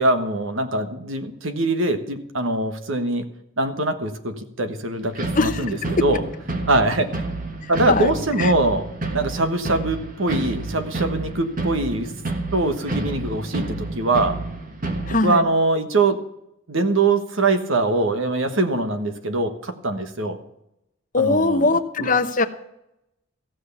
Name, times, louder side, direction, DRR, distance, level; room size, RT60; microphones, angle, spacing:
voice 1, 0.0-3.2 3.6-6.2 6.7-7.1 7.7-12.1 12.5-14.4 15.2-16.2 16.7-20.4 21.2-21.6 22.0-22.1, right 2 dB, 65° right, 7 dB, 1.4 m, -23 dB
sound 1, 5.2-15.2, right 2 dB, 40° right, 1.5 m, -29 dB
voice 2, 5.4-6.0 7.6-8.1 8.4-8.5 15.1-15.4 21.1-22.5, left 3 dB, 40° left, 9 dB, 0.8 m, -21 dB
15.0 x 6.4 x 8.4 m, 0.81 s
head